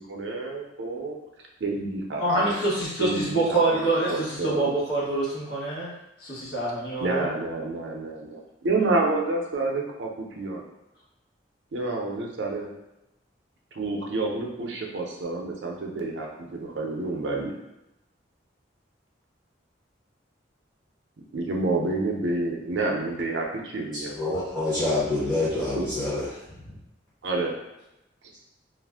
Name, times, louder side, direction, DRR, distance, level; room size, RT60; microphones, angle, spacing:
voice 1, 0.1-1.2 1.6-2.5 3.0-4.7 7.0-10.6 11.7-12.7 13.7-17.5 21.3-24.2 25.8-25.9 27.2-27.6, right 2 dB, 70° right, 0 dB, 0.5 m, -29 dB
voice 2, 2.2-5.9 6.2-7.3, right 2 dB, 60° left, -6 dB, 1.0 m, -26 dB
voice 3, 23.9-26.8, left 2 dB, 5° left, -10 dB, 0.7 m, -27 dB
2.4 x 2.0 x 3.4 m, 0.92 s
head